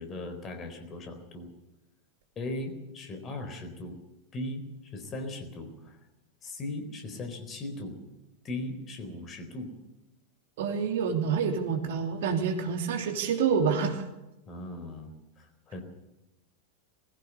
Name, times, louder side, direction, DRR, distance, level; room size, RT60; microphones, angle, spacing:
voice 1, 0.0-1.5 2.4-4.0 4.3-6.0 6.4-8.0 8.4-9.7 14.5-15.1 15.4-15.8, left 2 dB, 25° left, 6 dB, 4.1 m, -38 dB
voice 2, 10.6-14.0, right 6 dB, 55° right, 4 dB, 3.1 m, -27 dB
21.0 x 16.0 x 8.2 m, 0.98 s
figure-of-eight pair, 90°, 0 cm